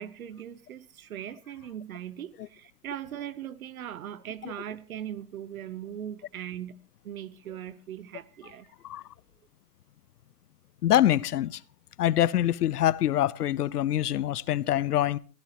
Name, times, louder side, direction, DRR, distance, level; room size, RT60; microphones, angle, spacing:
voice 1, 0.0-6.8 7.0-8.7, right 10 dB, 60° right, 1.1 m, -39 dB
voice 2, 10.8-11.6 12.0-15.2, left 12 dB, 75° left, 0.9 m, -25 dB
23.5 x 16.0 x 3.1 m
hypercardioid pair, 175°, 47 cm